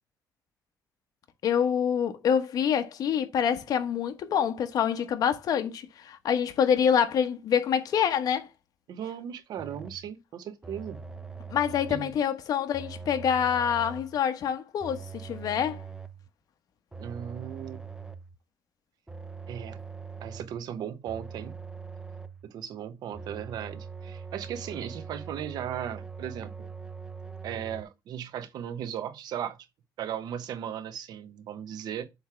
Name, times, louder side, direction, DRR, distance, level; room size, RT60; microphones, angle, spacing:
voice 1, 1.4-8.5 11.5-15.8, left 8 dB, 65° left, 1.1 m, -26 dB
voice 2, 8.9-11.0 11.9-12.1 17.0-17.8 19.5-19.8 20.2-21.5 22.4-26.7 27.4-29.6 30.0-32.1, right 9 dB, 75° right, 1.1 m, -37 dB
sound 1, 9.6-10.1 10.6-12.1 12.7-14.2 14.8-16.3 16.9-18.4 19.1-20.6 21.1-22.5 23.1-27.8, right 5 dB, 10° right, 0.9 m, -42 dB
7.9 x 3.3 x 5.9 m
cardioid pair, 120°, 7 cm